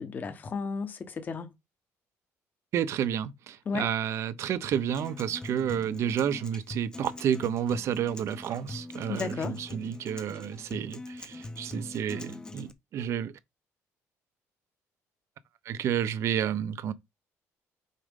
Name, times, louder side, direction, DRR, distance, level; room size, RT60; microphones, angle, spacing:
voice 1, 0.0-1.5 3.7-3.9 9.1-9.6, left 5 dB, 30° left, 1.1 m, -33 dB
voice 2, 2.7-13.3 15.7-16.9, right 9 dB, 55° right, 0.7 m, -30 dB
Acoustic guitar, 4.7-12.7, left 2 dB, 15° left, 0.8 m, -42 dB
6.4 x 5.0 x 3.7 m
cardioid pair, 150°, 6 cm